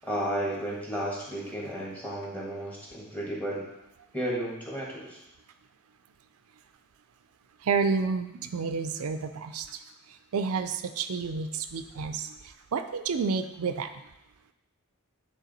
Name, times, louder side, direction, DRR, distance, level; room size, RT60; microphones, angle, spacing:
voice 1, 0.0-3.7 4.1-5.2, right 1 dB, 5° left, -4 dB, 1.5 m, -33 dB
voice 2, 7.7-8.3 8.5-9.7 10.3-12.3 12.7-13.9, right 5 dB, 80° right, 9 dB, 0.4 m, -29 dB
9.1 x 3.6 x 4.0 m, 0.87 s
head